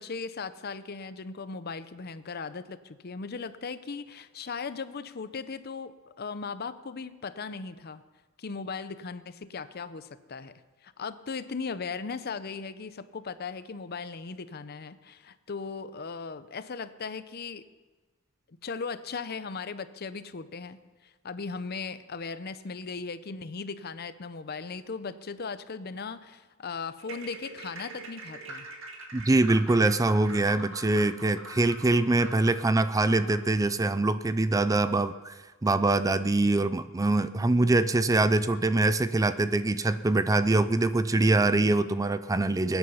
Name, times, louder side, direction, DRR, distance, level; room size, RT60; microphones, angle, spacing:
voice 1, 0.0-8.0 8.4-10.5 10.8-17.7 18.6-28.7, left 5 dB, 50° left, 13 dB, 0.7 m, -38 dB
sound 1, 27.0-33.5, right 2 dB, 70° right, 2.0 m, -44 dB
voice 2, 29.1-35.3 35.6-42.8, right 2 dB, 15° right, 13 dB, 0.4 m, -24 dB
22.0 x 9.7 x 5.5 m, 1.3 s
head